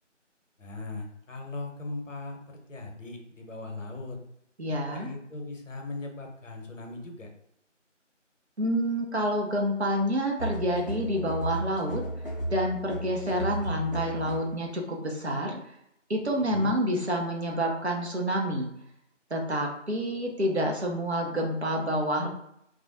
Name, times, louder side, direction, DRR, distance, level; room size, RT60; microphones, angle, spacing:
voice 1, 0.6-4.2 4.7-7.3 16.3-16.7, left 2 dB, 80° left, 2 dB, 0.7 m, -39 dB
voice 2, 4.6-5.1 8.6-12.0 12.5-15.6 16.1-18.7 19.3-22.3, equal, 60° right, 0 dB, 0.6 m, -28 dB
sound 1, 10.4-14.6, right 1 dB, 50° left, 0.5 m, -34 dB
2.3 x 2.1 x 2.6 m, 0.78 s
figure-of-eight pair, 170°, 37 cm